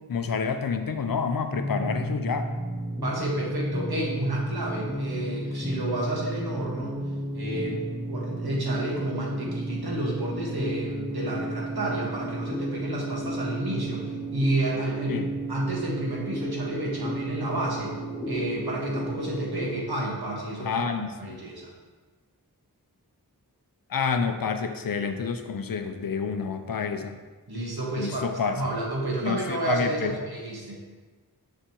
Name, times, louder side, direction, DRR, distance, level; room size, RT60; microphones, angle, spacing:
voice 1, 0.1-2.5 15.1-15.3 20.6-21.4 23.9-27.2 28.0-28.6 29.2-30.1, left 5 dB, 65° left, 8 dB, 0.6 m, -28 dB
sound 1, 1.5-19.8, right 1 dB, 5° left, 0.5 m, -33 dB
voice 2, 3.0-7.1 7.3-18.0 18.3-21.7 27.5-30.8, right 1 dB, 75° right, -3 dB, 1.6 m, -30 dB
6.8 x 5.1 x 3.0 m, 1.4 s
wide cardioid pair, 55°, 38 cm